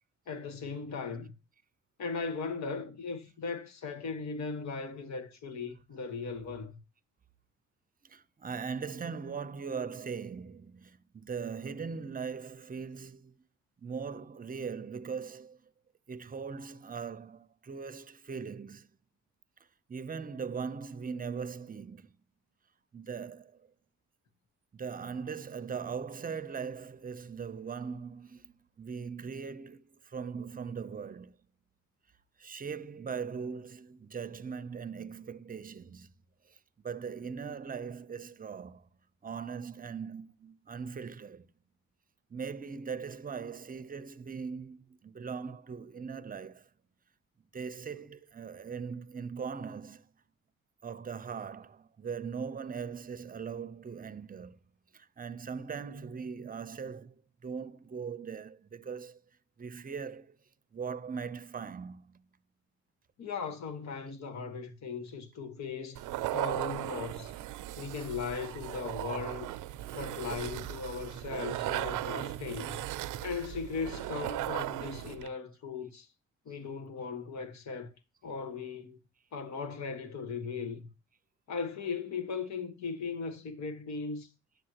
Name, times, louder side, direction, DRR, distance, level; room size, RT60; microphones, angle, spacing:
voice 1, 0.3-1.3 2.0-6.8 63.2-66.0 66.3-67.4 67.8-69.5 69.9-72.8 73.2-76.1 76.4-77.9 78.2-79.0 79.3-80.9 81.5-84.3, left 5 dB, 65° left, 1.5 m, -38 dB
voice 2, 8.0-13.5 13.8-15.6 16.1-18.9 19.9-22.1 22.9-23.7 24.7-31.4 32.4-36.1 36.5-36.6 36.8-38.9 39.2-41.4 42.3-46.7 47.5-50.1 50.8-54.6 54.9-57.1 57.4-59.2 59.6-60.4 60.7-62.2 65.8-65.9 66.4-66.5, right 6 dB, 30° right, 0.7 m, -40 dB
sound 1, 65.9-75.3, right 15 dB, 85° right, 0.6 m, -37 dB
10.5 x 7.5 x 2.9 m
cardioid pair, 90°, 30 cm